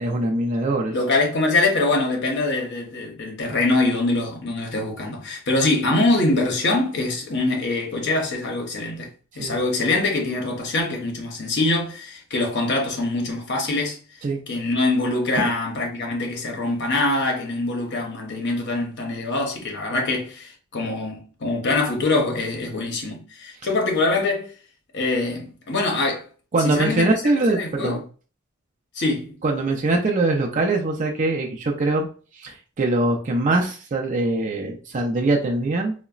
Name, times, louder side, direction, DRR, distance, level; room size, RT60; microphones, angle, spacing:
voice 1, 0.0-0.9 9.4-9.5 14.2-14.4 15.3-15.5 26.5-28.0 29.4-32.1 32.4-35.9, right 2 dB, 40° right, 0.4 m, -22 dB
voice 2, 0.9-9.1 9.4-14.0 14.5-24.5 24.9-26.3 26.6-27.1 27.5-28.0 28.9-29.4, left 2 dB, 60° left, 0.8 m, -24 dB
3.8 x 2.1 x 2.3 m
head